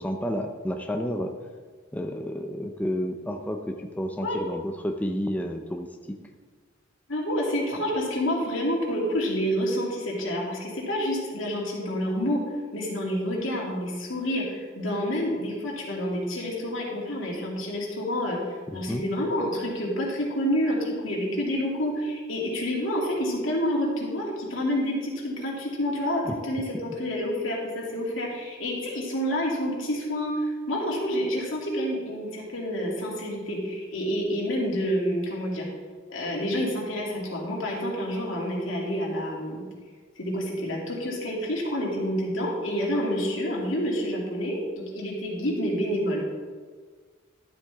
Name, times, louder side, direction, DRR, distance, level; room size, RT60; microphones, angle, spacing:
voice 1, 0.0-1.3 1.9-5.9 18.7-19.0 26.2-26.3, equal, 10° left, 4 dB, 0.5 m, -30 dB
voice 2, 7.1-12.4 12.7-35.7 36.1-39.6 40.2-46.3, equal, 75° left, -3 dB, 2.6 m, -28 dB
12.0 x 7.8 x 3.5 m, 1.5 s
head